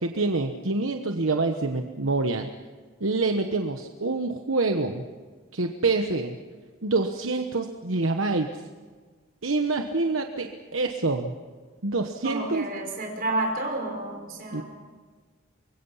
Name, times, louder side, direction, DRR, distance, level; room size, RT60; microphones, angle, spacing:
voice 1, 0.0-2.5 3.0-5.0 5.5-6.4 6.8-8.5 9.4-11.3 11.8-12.6 14.5-14.6, right 3 dB, 70° right, 5 dB, 1.2 m, -26 dB
voice 2, 12.2-14.6, right 2 dB, 45° right, 2 dB, 5.2 m, -30 dB
25.5 x 22.5 x 5.7 m, 1.5 s
head